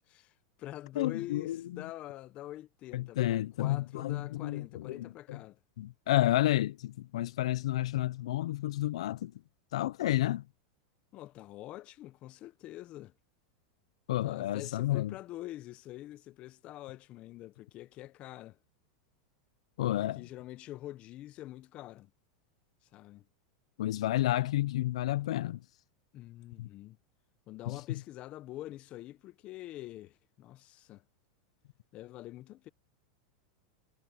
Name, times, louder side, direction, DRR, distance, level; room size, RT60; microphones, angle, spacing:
voice 1, 0.0-5.6 11.1-13.1 14.2-18.6 20.0-22.1 22.8-23.3 24.3-24.5 26.1-27.0 27.5-31.0 31.9-32.7, left 15 dB, 40° left, 0.8 m, -46 dB
voice 2, 1.0-1.6 2.9-5.1 5.8-9.3 9.7-10.4 14.1-15.1 19.8-20.2 23.8-25.6 26.6-26.7 27.7-27.8, left 14 dB, 80° left, 0.5 m, -30 dB
supercardioid pair, 135°, 3 cm